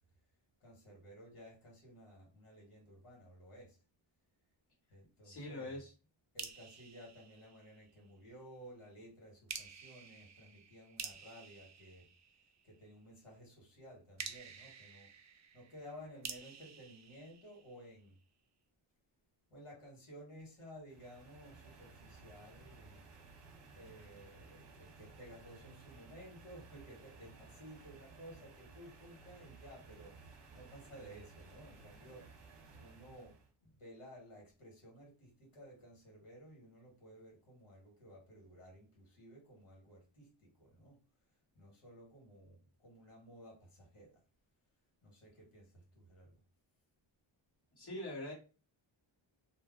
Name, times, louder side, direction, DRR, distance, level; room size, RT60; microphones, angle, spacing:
voice 1, 0.6-3.8 4.9-5.8 6.3-12.1 12.6-15.1 15.5-18.2 19.5-23.1 23.7-41.0 41.5-44.2 45.0-46.4, equal, 80° left, 1.5 m, -55 dB
voice 2, 5.2-5.9 47.8-48.3, left 1 dB, 50° left, 1.5 m, -43 dB
sound 1, 6.4-8.1 9.5-12.8 14.2-18.1, right 6 dB, 35° right, 0.4 m, -50 dB
sound 2, 20.9-33.5, right 4 dB, 55° right, 0.8 m, -57 dB
2.6 x 2.0 x 3.6 m
wide cardioid pair, 110°, 50 cm